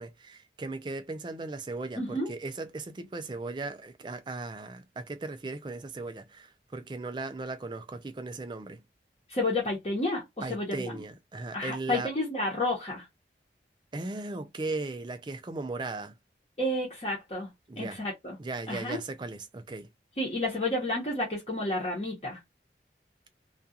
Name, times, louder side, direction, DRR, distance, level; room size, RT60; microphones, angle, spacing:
voice 1, 0.0-8.8 10.4-12.1 13.9-16.2 17.7-18.0 18.4-19.9, right 3 dB, 25° right, 0.4 m, -37 dB
voice 2, 2.0-2.3 9.3-11.0 11.5-13.1 16.6-18.4 18.7-19.0 20.2-22.4, left 1 dB, 35° left, 0.9 m, -31 dB
2.4 x 2.3 x 2.7 m
head